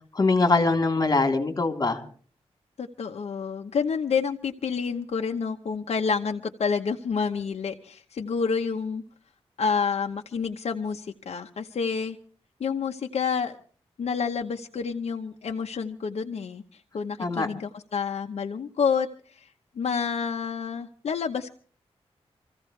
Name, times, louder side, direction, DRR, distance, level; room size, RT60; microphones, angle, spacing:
voice 1, 0.2-2.0 17.2-17.5, left 3 dB, 35° left, 4 dB, 3.4 m, -22 dB
voice 2, 2.8-9.0 9.6-12.2 12.6-13.6 14.0-19.5 19.8-21.5, left 6 dB, 75° left, 4 dB, 0.9 m, -29 dB
26.5 x 15.5 x 3.3 m, 0.44 s
wide cardioid pair, 95°, 11 cm